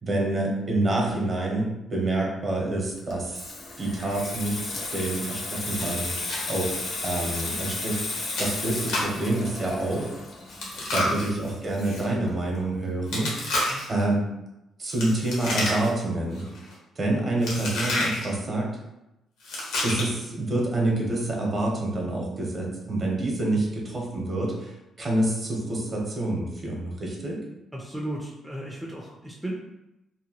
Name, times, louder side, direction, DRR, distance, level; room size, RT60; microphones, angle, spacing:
voice 1, 0.0-3.4 3.8-10.1 10.7-13.5 13.9-14.2 14.8-16.4 17.0-18.7 19.8-27.4, right 2 dB, 40° right, -2 dB, 0.9 m, -27 dB
Water tap faucet / Sink (filling or washing), 3.0-12.3 12.6-12.8, left 3 dB, 60° left, 0.6 m, -34 dB
Chewing mastication, 5.8-6.4 6.7-6.8 7.3-7.5 8.3-9.2 10.5-12.0 13.1-14.0 14.9-16.1 16.3-16.7 17.4-18.2 19.4-20.2, left 1 dB, 90° left, 0.9 m, -30 dB
voice 2, 27.7-29.5, right 1 dB, 5° right, -3 dB, 0.4 m, -35 dB
2.8 x 2.2 x 2.9 m, 0.93 s
cardioid pair, 90°, 0 cm